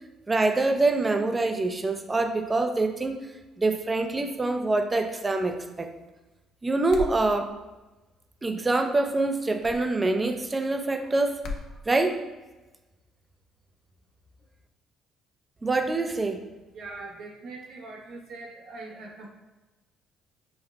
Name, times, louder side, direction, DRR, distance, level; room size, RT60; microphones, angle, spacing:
voice 1, 0.3-3.2 3.6-5.9 6.6-7.6 8.4-11.4 11.9-12.2 15.6-16.4, right 2 dB, 25° right, 6 dB, 0.5 m, -25 dB
sound 1, 6.9-7.2 9.6-9.8 11.4-11.7, left 4 dB, 65° left, 0.5 m, -34 dB
voice 2, 16.7-19.3, right 3 dB, 65° right, -1 dB, 1.0 m, -41 dB
5.2 x 2.2 x 3.5 m, 1.1 s
supercardioid pair, 80°, 0 cm